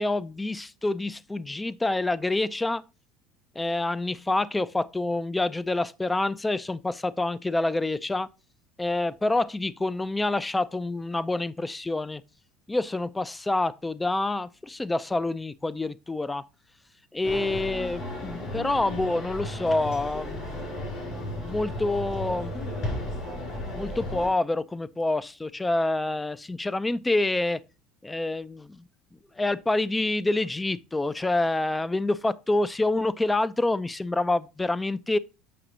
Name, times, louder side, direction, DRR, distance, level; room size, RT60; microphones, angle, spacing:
voice 1, 0.0-2.8 3.6-8.3 8.8-12.2 12.7-16.4 17.1-20.8 21.1-22.5 23.7-27.6 28.0-28.8 29.4-35.2, left 2 dB, 15° left, 0.5 m, -27 dB
sound 1, 17.2-24.3, left 1 dB, 60° left, 4.9 m, -34 dB
7.6 x 5.7 x 3.9 m
hypercardioid pair, 85°, 0 cm